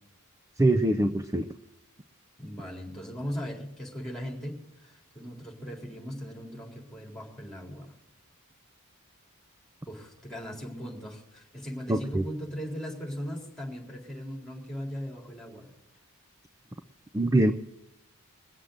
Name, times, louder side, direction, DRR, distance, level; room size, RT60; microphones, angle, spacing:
voice 1, 0.6-1.5 11.9-12.2 17.1-17.5, right 1 dB, 15° right, 9 dB, 0.5 m, -23 dB
voice 2, 2.4-7.9 9.9-15.7, equal, ahead, -1 dB, 3.8 m, -38 dB
21.5 x 7.5 x 6.5 m, 0.87 s
head